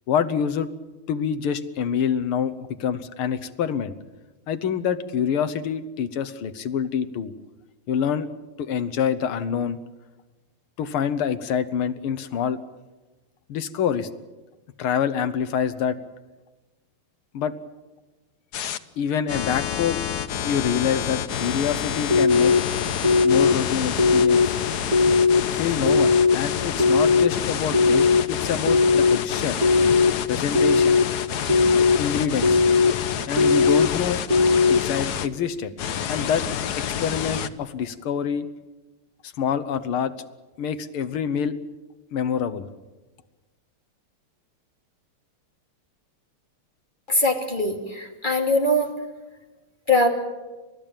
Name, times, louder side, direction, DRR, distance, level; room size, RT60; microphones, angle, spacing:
voice 1, 0.1-0.7 1.1-2.5 2.8-3.9 4.5-7.3 7.9-8.3 8.6-9.8 10.8-12.6 13.5-14.1 14.8-16.0 17.3-17.5 19.0-20.0 20.4-22.5 23.2-24.5 25.5-29.6 30.3-31.0 32.0-32.6 33.3-34.2 34.7-35.7 36.1-36.4 36.8-38.5 39.2-40.1 40.6-41.6 42.1-42.7, left 7 dB, 80° left, 13 dB, 2.0 m, -26 dB
sound 1, 18.5-18.8 19.3-35.3 35.8-37.5, left 9 dB, 60° left, 1.2 m, -28 dB
sound 2, 22.1-22.6 23.0-23.5 24.0-24.5 24.9-25.4 25.9-26.4 26.8-27.3 27.7-28.2 28.7-29.2 29.6-30.1 30.5-31.0 31.5-32.0 32.4-32.9 33.4-33.9 34.3-34.8, left 4 dB, 20° right, 1.1 m, -18 dB
voice 2, 47.1-48.9 49.9-50.1, left 1 dB, 20° left, 3 dB, 2.6 m, -21 dB
30.0 x 14.0 x 9.0 m, 1.2 s
omnidirectional pair, 2.4 m